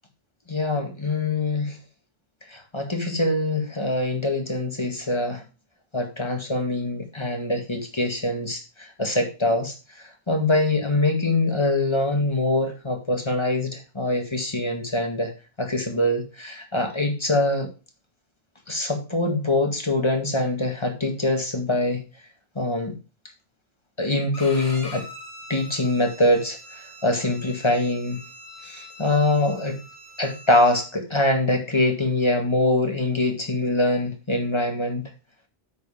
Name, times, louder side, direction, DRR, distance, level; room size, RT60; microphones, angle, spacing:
voice 1, 0.5-1.8 2.5-5.4 5.9-9.7 10.3-15.3 15.6-17.7 18.7-22.0 22.6-22.9 24.0-25.1 25.5-26.6 27.0-28.2 28.6-29.8 30.2-35.0, left 2 dB, 25° left, 3 dB, 2.0 m, -24 dB
Bowed string instrument, 24.3-30.8, left 1 dB, 55° left, 2.9 m, -43 dB
8.2 x 6.6 x 3.6 m, 0.31 s
omnidirectional pair, 1.1 m